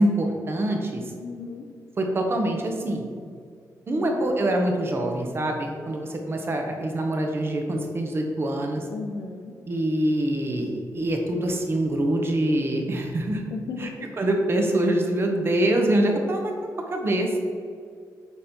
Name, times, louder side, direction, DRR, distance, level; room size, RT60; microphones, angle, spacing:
voice 1, 0.0-1.0 2.0-3.0 3.9-8.9 9.7-13.4 13.8-13.9 14.2-16.5 16.9-17.4, right 1 dB, 35° right, 2 dB, 1.0 m, -24 dB
voice 2, 1.2-1.7 3.9-4.2 8.9-9.5 13.5-13.9, left 4 dB, 85° left, 5 dB, 0.7 m, -35 dB
8.9 x 3.1 x 4.4 m, 2.2 s
wide cardioid pair, 135°, 7 cm